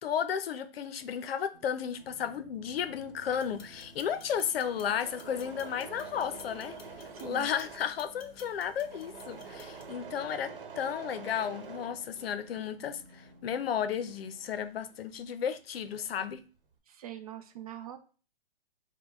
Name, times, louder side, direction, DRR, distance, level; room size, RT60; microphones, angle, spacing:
voice 1, 0.0-6.8 7.2-16.4, left 8 dB, 75° left, 0.6 m, -33 dB
sound 1, 1.5-14.6, right 1 dB, 20° right, 0.8 m, -56 dB
Engine / Mechanisms, 3.0-12.6 13.0-15.3 15.6-16.3, right 5 dB, 65° right, 1.0 m, -48 dB
sound 2, 3.3-9.9, left 5 dB, 35° left, 0.7 m, -56 dB
voice 2, 7.1-7.5 16.9-18.0, right 12 dB, 40° right, 0.5 m, -43 dB
4.9 x 2.2 x 3.5 m
hypercardioid pair, 165°, 30 cm